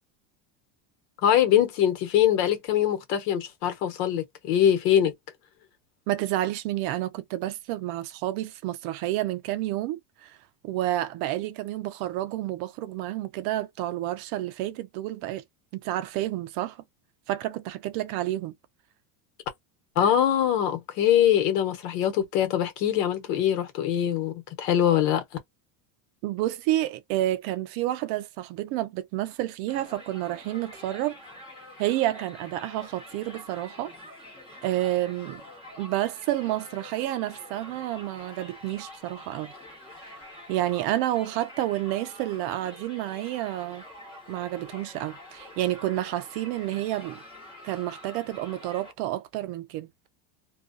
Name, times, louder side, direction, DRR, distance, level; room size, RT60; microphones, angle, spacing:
voice 1, 1.2-5.1 20.0-25.2, left 10 dB, 75° left, 1.0 m, -23 dB
voice 2, 6.1-10.4 10.6-15.4 15.8-16.8 17.3-18.5 26.2-31.2 31.8-33.9 34.6-35.4 35.8-39.5 40.0-40.1 40.5-43.8 44.3-47.2 47.6-49.9, right 14 dB, 50° right, 0.5 m, -30 dB
Crowd, 29.7-48.9, left 1 dB, 10° left, 1.0 m, -46 dB
2.4 x 2.2 x 2.5 m
cardioid pair, 150°, 49 cm